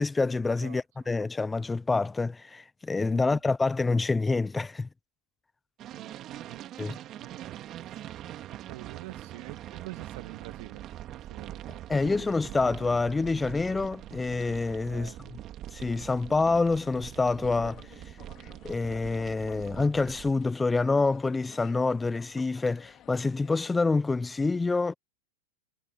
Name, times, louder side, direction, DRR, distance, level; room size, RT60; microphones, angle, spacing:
voice 1, 0.0-4.9 6.8-7.0 11.9-15.1 15.7-18.0 18.6-24.9, left 3 dB, 10° left, 0.3 m, -27 dB
sound 1, 5.8-20.3, right 13 dB, 35° right, 1.9 m, -43 dB
voice 2, 7.2-7.5 7.8-8.2 8.7-10.9 11.1-12.5 14.8-15.5, right 20 dB, 60° right, 1.6 m, -47 dB
sound 2, 16.8-23.7, left 12 dB, 35° left, 3.0 m, -52 dB
hypercardioid pair, 125°, 0 cm